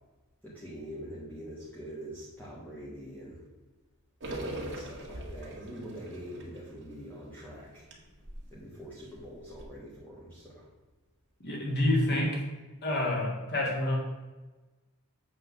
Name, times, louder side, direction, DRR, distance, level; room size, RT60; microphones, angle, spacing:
voice 1, 0.4-3.4 4.5-7.9 8.5-10.7, equal, 10° left, -8 dB, 1.5 m, -44 dB
sound 1, 4.2-8.5 8.9-9.0 9.4-9.6, right 1 dB, 55° right, 1.7 m, -41 dB
voice 2, 11.4-12.4 12.8-13.9, left 1 dB, 50° left, -1 dB, 2.1 m, -28 dB
8.0 x 3.8 x 6.6 m, 1.2 s
head